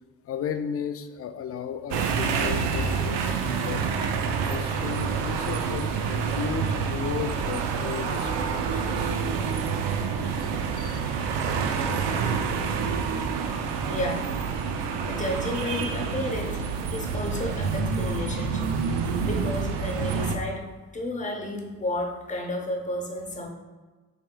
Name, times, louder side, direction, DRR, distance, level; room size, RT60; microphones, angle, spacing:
voice 1, 0.2-3.8 4.4-9.2 10.4-11.9, left 7 dB, 35° left, 9 dB, 0.4 m, -35 dB
sound 1, 1.9-20.4, right 6 dB, 65° right, 0.6 m, -28 dB
voice 2, 13.9-14.3 15.1-23.5, left 1 dB, 15° left, 2 dB, 0.9 m, -32 dB
4.2 x 3.5 x 2.3 m, 1.3 s
hypercardioid pair, 45°, 47 cm